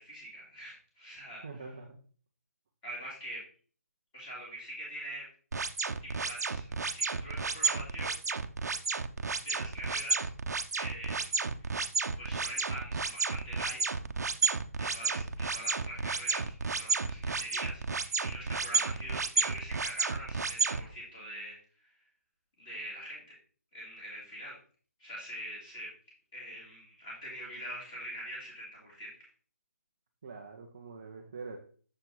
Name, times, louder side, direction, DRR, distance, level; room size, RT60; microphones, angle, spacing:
voice 1, 0.0-1.4 2.8-3.4 4.1-5.3 6.0-8.1 9.4-10.3 10.7-11.3 11.6-11.8 12.2-13.8 14.8-21.6 22.6-23.2 23.7-24.6 25.0-25.9 26.3-29.2, equal, 15° left, -5 dB, 2.3 m, -43 dB
voice 2, 1.4-2.0 30.2-31.6, right 4 dB, 15° right, 1 dB, 0.4 m, -44 dB
sound 1, 5.5-20.8, right 4 dB, 85° right, 0.6 m, -31 dB
6.7 x 4.7 x 3.8 m, 0.43 s
hypercardioid pair, 180°, 9 cm